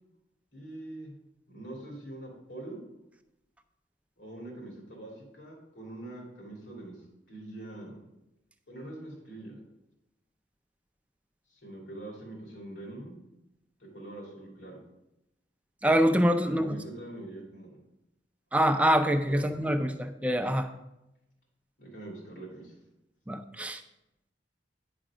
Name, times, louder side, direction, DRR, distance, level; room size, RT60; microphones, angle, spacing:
voice 1, 0.5-1.1 1.5-2.8 4.2-7.0 7.3-8.0 8.7-9.6 11.6-13.2 13.8-14.8 16.4-17.8 19.2-19.6 21.8-22.7, right 2 dB, 75° left, -2 dB, 3.0 m, -43 dB
voice 2, 15.8-16.7 18.5-20.7 23.3-23.8, equal, 10° right, 7 dB, 0.5 m, -25 dB
9.9 x 5.0 x 4.9 m, 0.89 s
head